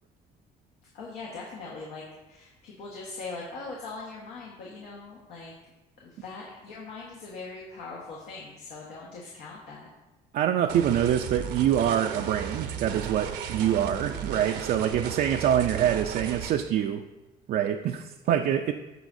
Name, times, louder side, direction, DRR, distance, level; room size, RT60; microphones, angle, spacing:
voice 1, 0.9-5.5 6.0-9.9, left 3 dB, 85° left, -3 dB, 1.3 m, -41 dB
voice 2, 10.3-17.0 17.5-18.7, right 10 dB, 60° right, 5 dB, 0.4 m, -25 dB
sound 1, 10.7-16.5, right 8 dB, 80° right, 0.8 m, -35 dB
14.5 x 4.8 x 2.6 m, 1.1 s
cardioid pair, 110°, 17 cm